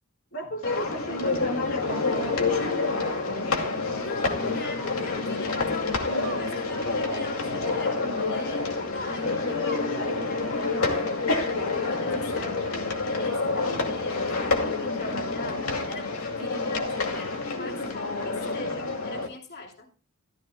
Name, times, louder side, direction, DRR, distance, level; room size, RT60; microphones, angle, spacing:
voice 1, 0.3-3.7 9.0-11.0, left 2 dB, 70° left, -1 dB, 2.7 m, -36 dB
sound 1, 0.6-19.3, left 3 dB, 85° left, 2.4 m, -28 dB
voice 2, 4.0-9.6 11.7-19.9, left 3 dB, 50° left, 1 dB, 2.9 m, -40 dB
14.5 x 14.0 x 2.2 m, 0.31 s
head